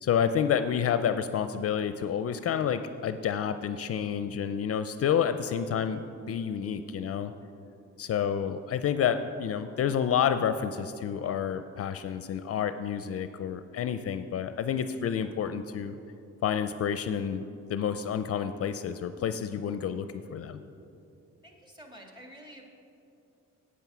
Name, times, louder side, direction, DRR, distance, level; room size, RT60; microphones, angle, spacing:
voice 1, 0.0-7.3 8.0-16.0 16.4-17.4 17.7-20.6, left 8 dB, 50° left, 10 dB, 0.5 m, -29 dB
voice 2, 21.4-22.7, equal, 15° right, 1 dB, 2.0 m, -49 dB
9.2 x 8.5 x 6.1 m, 2.7 s
cardioid pair, 90°, 30 cm